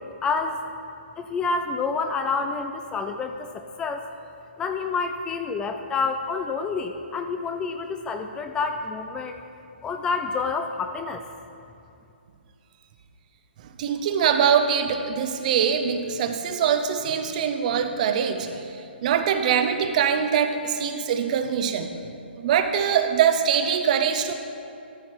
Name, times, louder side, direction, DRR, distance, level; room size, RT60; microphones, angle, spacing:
voice 1, 0.2-0.6 1.2-4.0 4.6-9.4 9.8-11.2, left 4 dB, 10° left, 6 dB, 0.3 m, -28 dB
voice 2, 13.8-18.8 19.0-21.9 22.4-24.3, right 7 dB, 40° right, 7 dB, 0.7 m, -23 dB
13.5 x 5.9 x 4.7 m, 2.6 s
hypercardioid pair, 140°, 6 cm